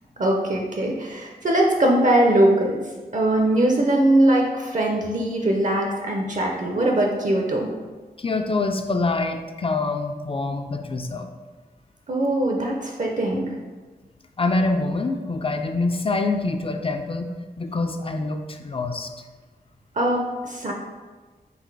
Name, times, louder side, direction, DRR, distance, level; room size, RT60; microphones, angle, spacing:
voice 1, 0.2-2.8 3.1-7.7 12.1-13.5 20.0-20.7, right 1 dB, 50° right, 0 dB, 0.5 m, -21 dB
voice 2, 8.2-11.3 14.4-17.3 17.6-19.1, left 3 dB, 35° left, 6 dB, 0.4 m, -25 dB
4.0 x 2.5 x 4.6 m, 1.3 s
wide cardioid pair, 90°, 16 cm